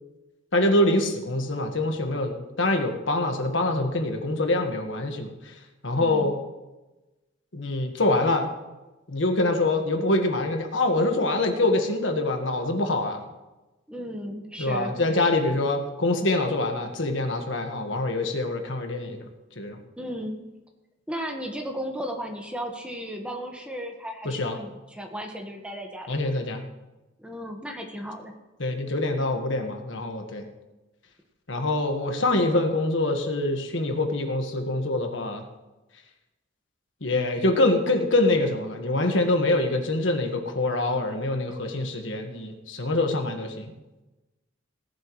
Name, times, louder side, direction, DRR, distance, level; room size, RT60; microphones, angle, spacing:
voice 1, 0.5-5.3 5.8-6.3 7.5-8.5 9.1-13.2 14.6-19.2 19.6-19.8 24.2-24.6 26.1-26.6 28.6-30.5 31.5-35.4 37.0-43.7, left 2 dB, 65° left, 5 dB, 1.5 m, -25 dB
voice 2, 6.0-6.3 13.9-15.0 20.0-20.4 21.1-26.2 27.2-28.3, equal, 5° right, 2 dB, 1.4 m, -35 dB
18.0 x 11.5 x 3.2 m, 1.1 s
head